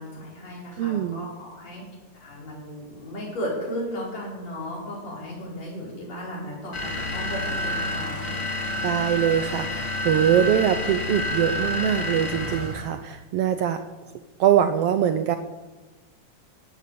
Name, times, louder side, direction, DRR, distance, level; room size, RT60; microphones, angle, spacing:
voice 1, 0.0-1.8 2.2-8.3, equal, 60° left, -4 dB, 6.3 m, -35 dB
voice 2, 0.8-1.3 8.8-13.8 14.4-15.4, right 9 dB, 90° right, 9 dB, 1.3 m, -23 dB
sound 1, 6.7-12.9, left 1 dB, 25° left, 2.0 m, -29 dB
16.0 x 10.5 x 6.9 m, 1.2 s
omnidirectional pair, 3.5 m